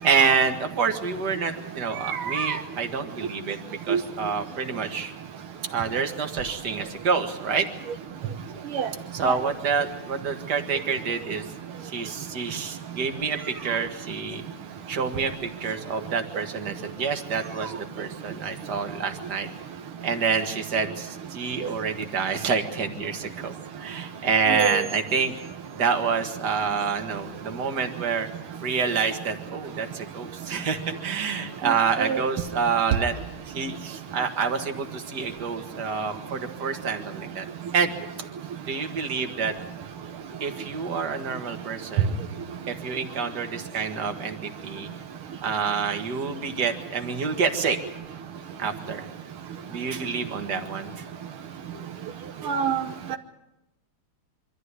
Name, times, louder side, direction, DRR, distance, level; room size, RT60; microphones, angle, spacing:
voice 1, 0.0-5.1 5.7-7.7 9.1-11.5 11.8-14.4 14.9-19.5 20.0-25.3 25.7-28.3 28.6-33.1 33.5-37.5 37.7-37.9 38.7-39.5 40.4-42.2 42.7-44.9 45.4-47.8 48.6-49.0 49.7-51.0, right 5 dB, 50° right, 5 dB, 2.3 m, -27 dB
voice 2, 24.5-24.8 32.0-32.2 52.5-52.8, right 7 dB, 85° right, 5 dB, 2.0 m, -24 dB
24.5 x 14.0 x 9.7 m, 0.90 s
omnidirectional pair, 2.3 m